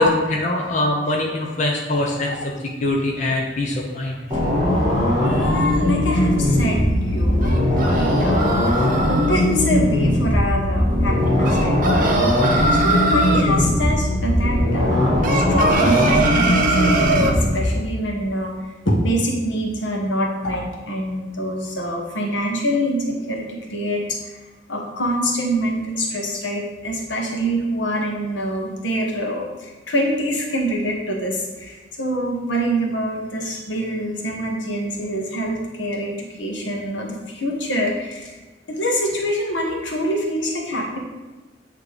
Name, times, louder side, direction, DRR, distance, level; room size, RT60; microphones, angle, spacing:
voice 1, 0.0-2.4 2.8-4.2, left 2 dB, 40° left, -1 dB, 0.8 m, -22 dB
voice 2, 4.3-4.7 5.1-12.2 12.7-24.4 24.7-38.4 38.7-41.0, equal, 85° left, -1 dB, 1.4 m, -25 dB
sound 1, 4.3-17.6, left 1 dB, 20° right, 2.4 m, -19 dB
sound 2, 7.4-9.4 11.4-13.5 15.2-17.4, right 3 dB, 45° right, 0.8 m, -22 dB
8.5 x 3.3 x 5.1 m, 1.2 s
head